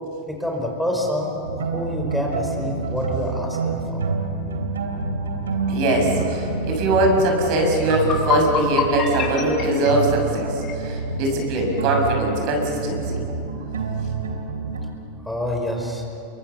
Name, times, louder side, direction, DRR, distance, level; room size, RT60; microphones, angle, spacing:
voice 1, 0.3-4.0 15.2-16.0, left 1 dB, 5° left, 0 dB, 4.8 m, -27 dB
sound 1, 1.4-14.9, right 4 dB, 85° right, 3.2 m, -27 dB
voice 2, 5.7-10.5 10.8-13.2, right 1 dB, 55° right, 2 dB, 6.4 m, -21 dB
sound 2, 7.8-10.8, left 5 dB, 35° left, 5.7 m, -26 dB
28.5 x 23.0 x 6.9 m, 2.9 s
hypercardioid pair, 95°, 0 cm